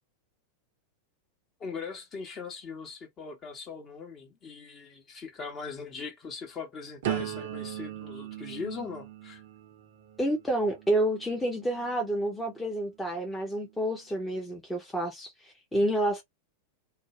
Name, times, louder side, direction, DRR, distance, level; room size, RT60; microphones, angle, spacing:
voice 1, 1.6-9.4, left 5 dB, 30° left, 1.1 m, -40 dB
sound 1, 7.0-12.9 13.4-13.8, right 12 dB, 55° right, 0.6 m, -39 dB
voice 2, 10.2-16.2, right 1 dB, 10° left, 0.9 m, -29 dB
2.6 x 2.3 x 2.9 m
figure-of-eight pair, 90°, 0 cm